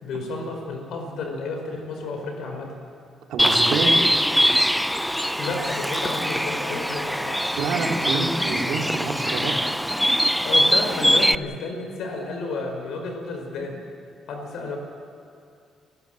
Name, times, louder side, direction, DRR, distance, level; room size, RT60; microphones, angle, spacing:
voice 1, 0.0-2.7 5.4-7.4 10.4-13.7 14.3-14.8, left 3 dB, 75° left, 3 dB, 4.8 m, -31 dB
voice 2, 3.3-3.9 7.6-9.6, right 4 dB, 80° right, 1 dB, 3.1 m, -27 dB
Bird, 3.4-11.3, equal, ahead, 0.5 m, -22 dB
29.5 x 15.5 x 7.7 m, 2.4 s
cardioid pair, 90°, 0 cm